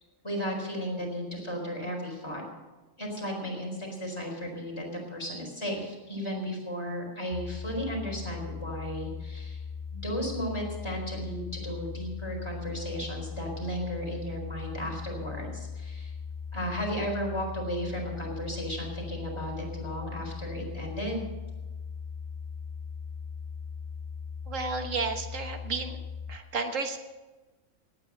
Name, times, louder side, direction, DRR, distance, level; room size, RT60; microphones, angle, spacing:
voice 1, 0.2-2.4 3.0-9.6 9.9-16.1 16.5-21.2, equal, 20° left, -1 dB, 4.3 m, -34 dB
sound 1, 7.3-26.4, left 6 dB, 40° left, 0.8 m, -39 dB
voice 2, 24.5-26.0 26.3-27.0, right 4 dB, 85° right, 5 dB, 1.7 m, -32 dB
18.0 x 9.4 x 6.5 m, 1.2 s
omnidirectional pair, 1.3 m